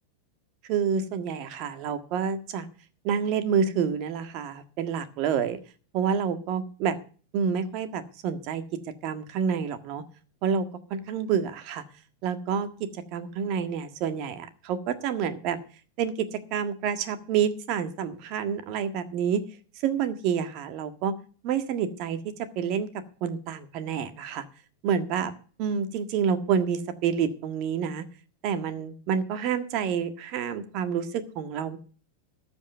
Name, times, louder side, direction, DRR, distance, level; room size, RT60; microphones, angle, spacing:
voice 1, 0.7-2.7 3.0-5.6 5.9-7.0 7.3-8.6 9.0-10.0 10.4-11.8 12.2-15.6 16.0-19.4 19.8-21.1 21.4-24.4 24.8-25.3 25.6-28.0 28.4-31.8, right 7 dB, 50° right, 10 dB, 1.6 m, -28 dB
14.0 x 5.3 x 9.1 m, 0.41 s
hypercardioid pair, 125°, 0 cm